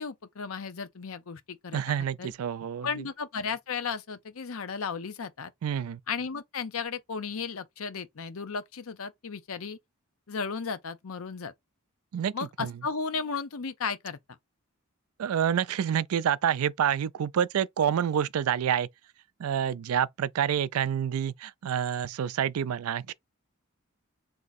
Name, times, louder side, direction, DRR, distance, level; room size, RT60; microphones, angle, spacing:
voice 1, 0.0-2.3 2.8-5.5 6.1-9.8 10.3-11.5 12.3-14.2, left 5 dB, 75° left, 0.6 m, -35 dB
voice 2, 1.7-2.9 5.6-6.0 12.1-12.3 12.6-12.7 15.2-18.9 19.4-23.1, right 9 dB, 85° right, 0.4 m, -28 dB
3.6 x 2.8 x 4.0 m
head